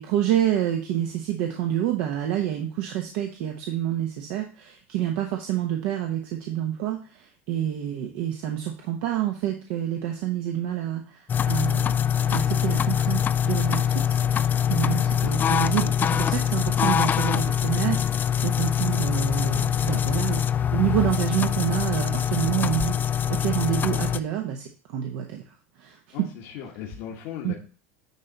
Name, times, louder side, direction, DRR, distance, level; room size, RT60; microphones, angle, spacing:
voice 1, 0.0-12.0 12.3-20.4 20.7-25.4 25.8-26.3 27.4-27.5, right 11 dB, 65° right, 2 dB, 1.0 m, -28 dB
sound 1, 11.3-24.2, left 9 dB, 25° left, 0.3 m, -24 dB
voice 2, 14.5-15.0 26.1-27.5, left 9 dB, 65° left, -1 dB, 1.3 m, -38 dB
9.6 x 3.4 x 4.0 m, 0.38 s
supercardioid pair, 105°, 7 cm